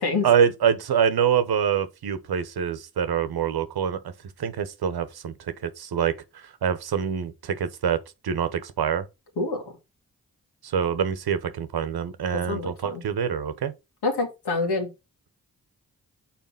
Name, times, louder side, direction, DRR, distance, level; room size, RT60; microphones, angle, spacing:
voice 1, 0.2-4.1 4.4-5.3 5.6-6.1 6.6-8.0 8.2-9.0 10.6-13.7, right 8 dB, 70° right, 1.0 m, -25 dB
voice 2, 12.5-13.0 14.0-14.9, left 3 dB, 80° left, 2.2 m, -26 dB
5.9 x 4.2 x 5.7 m
supercardioid pair, 40°, 39 cm